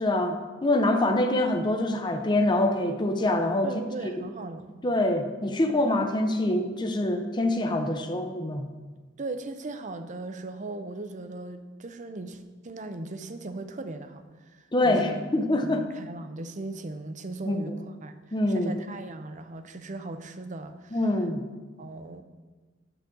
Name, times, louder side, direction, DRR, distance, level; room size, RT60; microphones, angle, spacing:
voice 1, 0.0-4.1 4.8-8.7 14.7-15.8 17.4-17.6 18.3-18.7 20.9-21.4, left 1 dB, 25° left, 5 dB, 0.6 m, -25 dB
voice 2, 3.6-4.7 9.2-15.3 15.6-18.2 18.5-21.0 21.8-22.2, right 2 dB, 40° right, 9 dB, 0.6 m, -38 dB
9.8 x 7.3 x 3.8 m, 1.3 s
head